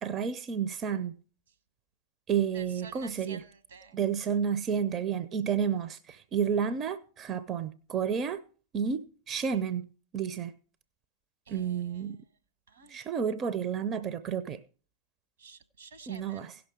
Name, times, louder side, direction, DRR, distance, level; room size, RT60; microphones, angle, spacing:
voice 1, 0.0-1.2 2.3-3.4 3.9-8.4 8.7-9.9 10.1-10.5 11.5-12.2 12.9-14.6 16.1-16.6, right 7 dB, 30° right, 0.5 m, -31 dB
voice 2, 2.5-4.0 11.5-12.1 12.7-13.0 15.4-16.5, right 5 dB, 65° right, 1.2 m, -50 dB
16.5 x 6.1 x 4.7 m
figure-of-eight pair, 90°, 0 cm